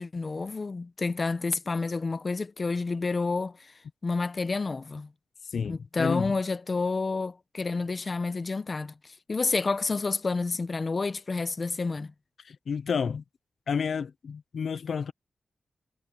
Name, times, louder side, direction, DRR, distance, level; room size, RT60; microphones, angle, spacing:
voice 1, 0.0-3.6 4.0-5.1 5.7-8.9 9.3-12.1, left 3 dB, 40° left, 0.8 m, -29 dB
voice 2, 5.4-6.3 12.4-13.2 13.7-15.1, left 6 dB, 75° left, 0.4 m, -30 dB
cardioid pair, 80°, 0 cm